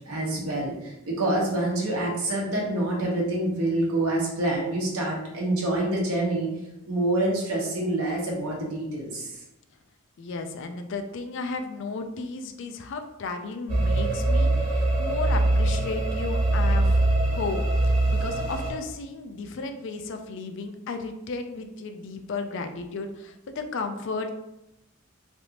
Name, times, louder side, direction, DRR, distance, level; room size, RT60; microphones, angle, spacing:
voice 1, 0.1-6.5 6.9-9.3, right 1 dB, 85° right, -3 dB, 1.0 m, -26 dB
voice 2, 10.2-24.3, left 3 dB, 55° left, 6 dB, 0.3 m, -34 dB
sound 1, 13.7-18.7, right 2 dB, 35° right, 1.4 m, -23 dB
3.3 x 2.5 x 2.8 m, 0.88 s
head